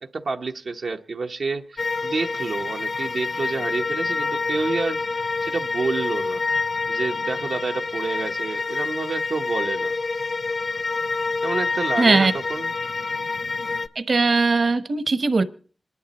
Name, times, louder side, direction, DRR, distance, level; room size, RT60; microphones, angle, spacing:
voice 1, 0.0-6.4 6.9-9.9 11.4-12.7, right 4 dB, 90° right, 0.8 m, -29 dB
sound 1, 1.8-13.9, left 4 dB, 60° left, 0.6 m, -27 dB
voice 2, 12.0-12.3 14.0-15.4, right 3 dB, 65° right, 0.9 m, -19 dB
26.5 x 11.0 x 4.1 m
wide cardioid pair, 75°, 0 cm